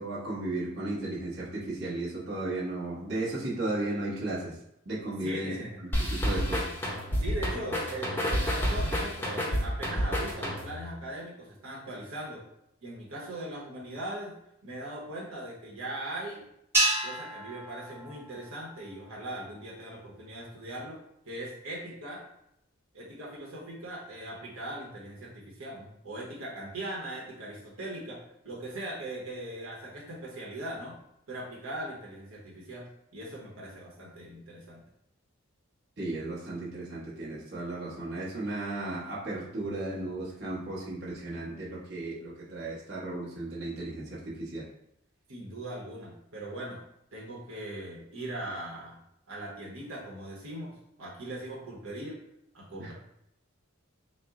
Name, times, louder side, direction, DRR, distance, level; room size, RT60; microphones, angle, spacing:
voice 1, 0.0-4.6 4.8-5.5 5.8-6.6 36.0-44.7 52.8-52.9, right 2 dB, 50° right, -6 dB, 1.1 m, -35 dB
voice 2, 5.2-5.8 7.2-12.4 12.8-14.4 14.6-16.5 17.0-21.0 21.3-22.2 22.9-31.0 31.3-34.8 45.3-46.8 47.1-49.0 49.3-52.2 52.5-52.9, right 1 dB, 85° right, -4 dB, 1.0 m, -40 dB
sound 1, 5.9-10.9, equal, 10° left, 0.6 m, -29 dB
sound 2, 16.7-19.2, right 2 dB, 10° right, 1.1 m, -31 dB
4.2 x 2.1 x 3.6 m, 0.76 s
head